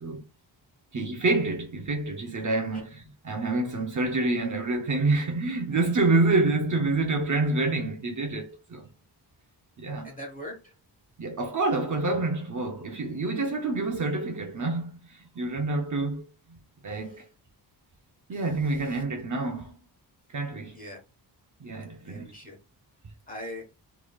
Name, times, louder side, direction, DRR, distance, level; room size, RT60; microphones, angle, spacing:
voice 1, 0.9-8.9 9.8-10.1 11.2-16.2 16.8-17.3 18.3-19.7 20.3-20.8 21.6-22.3, right 3 dB, 45° right, 0.8 m, -27 dB
voice 2, 10.0-10.7 16.8-17.2 18.3-18.4 18.8-19.0 20.7-21.0 22.0-22.6 23.3-23.7, equal, 20° left, 1.3 m, -42 dB
3.7 x 3.1 x 2.3 m
wide cardioid pair, 120°, 42 cm